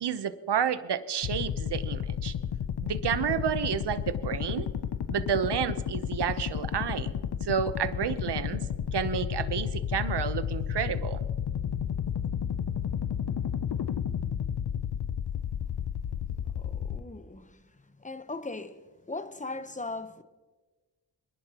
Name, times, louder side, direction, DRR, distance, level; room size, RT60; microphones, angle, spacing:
voice 1, 0.0-2.3 2.8-4.7 5.1-7.1 7.4-8.7 8.9-11.2, right 8 dB, 65° right, 0.9 m, -30 dB
sound 1, 1.2-17.0, left 8 dB, 60° left, 0.7 m, -32 dB
voice 2, 16.6-20.2, left 3 dB, 15° left, 0.9 m, -39 dB
24.0 x 11.0 x 3.0 m
cardioid pair, 55°, 44 cm